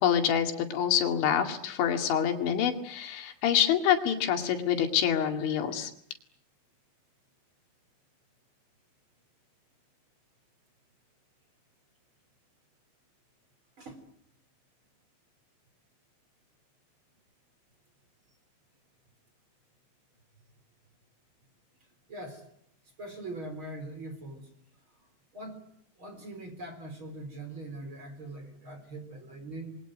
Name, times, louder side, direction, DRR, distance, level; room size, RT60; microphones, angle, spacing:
voice 1, 0.0-5.9, left 9 dB, 80° left, 6 dB, 4.6 m, -26 dB
voice 2, 21.8-22.5 23.0-24.5 24.9-25.0 25.3-25.6 26.0-29.8, right 2 dB, 30° right, 7 dB, 4.2 m, -42 dB
28.5 x 22.5 x 9.1 m, 0.67 s
omnidirectional pair, 5.3 m